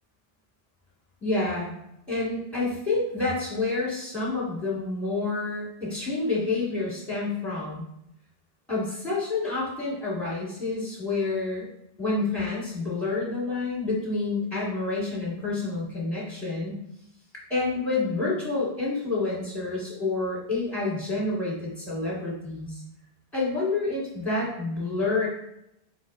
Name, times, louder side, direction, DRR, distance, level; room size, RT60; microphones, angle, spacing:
voice 1, 1.2-1.7 2.1-7.8 8.7-11.7 12.0-16.8 17.3-22.8 23.3-25.3, left 3 dB, ahead, -7 dB, 1.4 m, -28 dB
4.7 x 4.0 x 2.3 m, 0.82 s
omnidirectional pair, 1.0 m